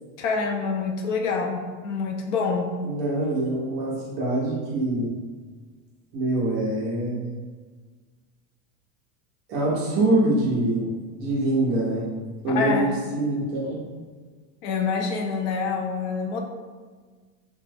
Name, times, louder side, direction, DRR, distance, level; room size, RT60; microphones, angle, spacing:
voice 1, 0.2-2.7 12.5-12.9 14.6-16.4, left 5 dB, 75° left, 2 dB, 0.6 m, -26 dB
voice 2, 2.8-5.1 6.1-7.3 9.5-10.9 11.2-12.0 12.4-12.9 13.1-13.8, right 1 dB, 30° right, -5 dB, 0.4 m, -24 dB
2.8 x 2.1 x 3.3 m, 1.5 s
cardioid pair, 180°, 38 cm